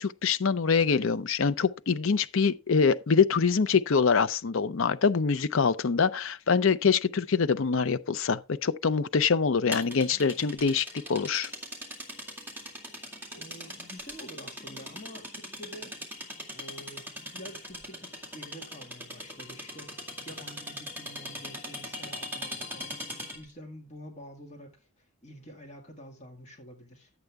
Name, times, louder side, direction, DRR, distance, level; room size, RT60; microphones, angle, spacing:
voice 1, 0.0-11.5, left 5 dB, 60° left, 0.6 m, -25 dB
sound 1, 9.7-23.5, equal, 10° right, 2.1 m, -40 dB
voice 2, 13.3-16.0 16.5-19.9 20.3-27.1, equal, 30° left, 2.0 m, -48 dB
11.0 x 8.0 x 3.5 m
head